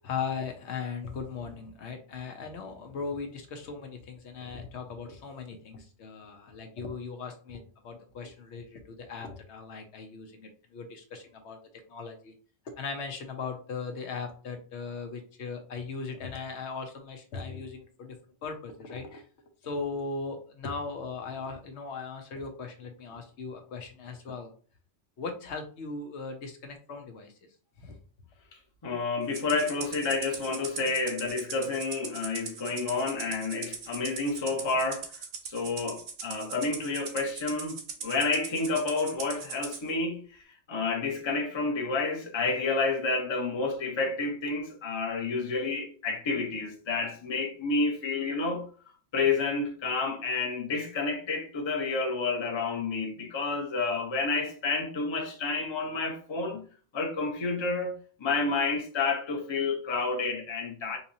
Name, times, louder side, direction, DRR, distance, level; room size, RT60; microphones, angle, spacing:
voice 1, 0.0-11.6 11.9-12.3 12.8-18.2 18.4-19.2 19.6-24.5 25.2-27.3 27.8-28.0, left 4 dB, 75° left, 1.0 m, -38 dB
voice 2, 28.8-35.1 35.5-40.2 40.7-48.7 49.1-56.6 56.9-57.9 58.2-61.0, left 3 dB, 30° left, 0.6 m, -30 dB
Rattle (instrument), 29.3-39.8, right 5 dB, 65° right, 0.9 m, -40 dB
4.0 x 2.8 x 2.6 m
omnidirectional pair, 1.2 m